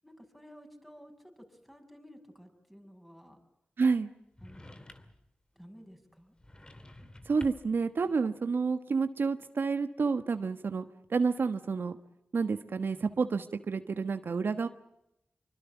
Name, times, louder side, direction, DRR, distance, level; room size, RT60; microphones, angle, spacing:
voice 1, 0.0-3.4 4.4-4.8 5.5-6.4, equal, 5° left, 4 dB, 6.8 m, -53 dB
voice 2, 3.8-4.1 7.3-10.8 11.1-12.0 12.3-14.7, right 4 dB, 70° right, 9 dB, 1.3 m, -29 dB
sound 1, 4.4-5.3 6.4-7.8, left 1 dB, 20° left, 2.4 m, -50 dB
26.0 x 24.0 x 7.2 m, 0.82 s
wide cardioid pair, 70°, 4 cm